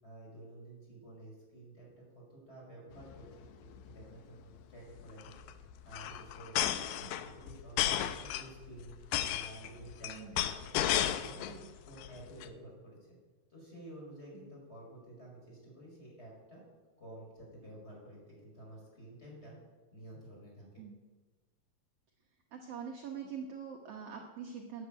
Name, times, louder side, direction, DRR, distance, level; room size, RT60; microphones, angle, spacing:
voice 1, 0.0-5.3 5.9-6.6 7.0-8.9 9.2-11.5 11.8-13.0 13.5-16.6 17.0-19.6 19.9-20.8, right 1 dB, 15° left, -3 dB, 5.4 m, -51 dB
sound 1, 3.0-3.2 3.4-3.5 3.7-4.0 5.0-11.6 12.0-12.4, left 11 dB, 75° left, 2.2 m, -33 dB
voice 2, 6.5-7.2 10.1-10.5 11.5-11.7 14.3-14.5 20.8-21.0 22.5-24.9, right 6 dB, 65° right, 2 dB, 1.5 m, -45 dB
13.0 x 9.4 x 8.8 m, 1.3 s
omnidirectional pair, 4.4 m